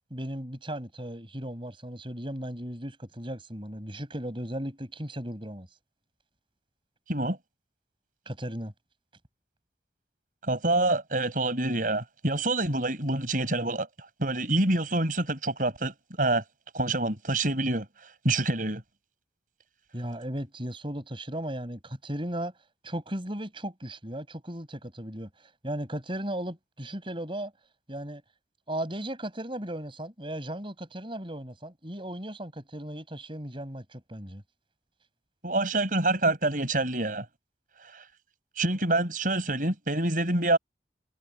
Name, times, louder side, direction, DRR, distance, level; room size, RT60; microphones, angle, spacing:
voice 1, 0.1-5.7 8.3-8.7 19.9-22.5 22.8-25.3 25.6-27.5 27.9-28.2 28.7-34.4, right 1 dB, 30° right, 6.0 m, -36 dB
voice 2, 10.4-13.9 14.2-16.4 16.7-17.8 18.2-18.8 35.4-37.2 37.9-38.0 38.6-40.6, right 2 dB, 50° right, 6.3 m, -26 dB
head